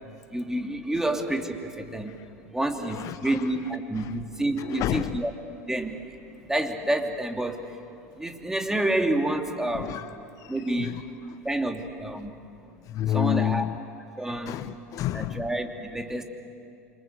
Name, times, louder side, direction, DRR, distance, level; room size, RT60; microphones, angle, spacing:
voice 1, 0.3-2.2 2.5-5.3 5.7-7.8 8.2-10.0 10.5-11.0 11.4-12.3 13.1-13.6 14.2-14.6 15.1-16.2, right 1 dB, 5° right, 4 dB, 2.9 m, -29 dB
voice 2, 2.8-3.5 3.9-4.1 4.6-5.2 9.7-11.0 11.3-11.4 12.8-13.8 14.4-15.5, left 12 dB, 45° left, 14 dB, 0.7 m, -30 dB
27.5 x 26.0 x 8.2 m, 2.6 s
hypercardioid pair, 80°, 8 cm